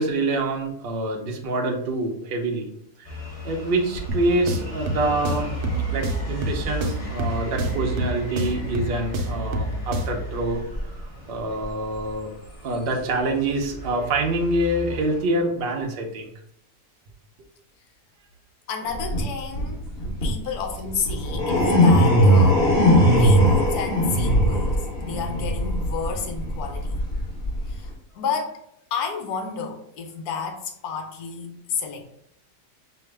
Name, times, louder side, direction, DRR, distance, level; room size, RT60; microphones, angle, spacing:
voice 1, 0.0-2.7 3.4-5.6 5.9-10.9 11.3-12.3 12.6-16.3, right 2 dB, 55° right, 2 dB, 0.6 m, -26 dB
sound 1, 3.0-15.2, right 3 dB, 25° left, 0.8 m, -34 dB
sound 2, 4.1-10.3, equal, 75° right, 1.1 m, -30 dB
voice 2, 18.7-19.8 20.2-27.0 27.7-27.9 28.1-28.6 28.9-32.1, left 6 dB, 75° left, 3 dB, 1.2 m, -31 dB
sound 3, 18.9-27.8, equal, 40° left, 1.4 m, -19 dB
5.6 x 2.1 x 3.3 m, 0.73 s
omnidirectional pair, 1.7 m